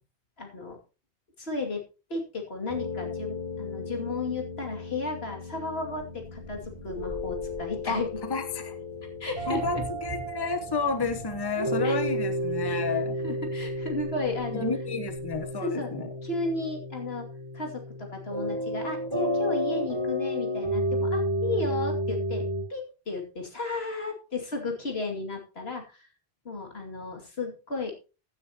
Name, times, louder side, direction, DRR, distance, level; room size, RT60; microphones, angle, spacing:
voice 1, 0.4-0.8 1.4-1.8 2.1-8.1 9.2-9.8 11.8-12.0 12.6-12.8 13.2-14.7 15.6-15.9 16.2-17.3 17.5-22.4 22.7-26.1 26.4-27.9, left 3 dB, 75° left, 2 dB, 2.8 m, -34 dB
sound 1, 2.7-22.6, equal, 25° right, 5.2 m, -32 dB
sound 2, 5.9-15.5, left 1 dB, 45° left, 5.1 m, -45 dB
voice 2, 8.3-8.7 9.5-13.1 14.6-16.1, left 4 dB, 25° left, 8 dB, 1.0 m, -31 dB
15.5 x 9.5 x 2.9 m, 0.32 s
omnidirectional pair, 1.1 m